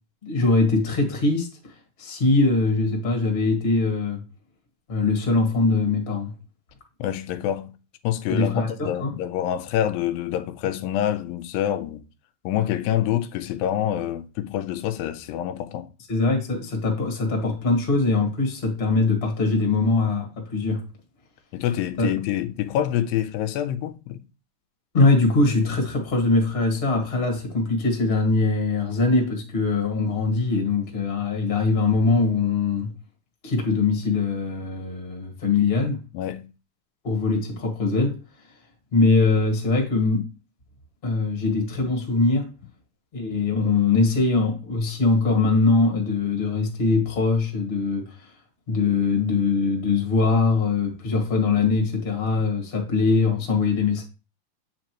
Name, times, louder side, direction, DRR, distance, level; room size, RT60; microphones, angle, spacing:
voice 1, 0.2-1.5 2.0-4.2 4.9-6.3 8.3-9.2 16.1-20.8 22.0-22.1 24.9-32.9 33.4-36.0 37.0-38.2 38.9-40.2 41.0-42.5 43.1-48.1 48.7-54.0, left 3 dB, 30° left, 1.2 m, -22 dB
voice 2, 7.0-7.7 8.0-12.0 12.5-15.9 21.5-24.2 36.1-36.5, left 11 dB, 90° left, 2.3 m, -26 dB
8.3 x 5.0 x 3.0 m
omnidirectional pair, 4.0 m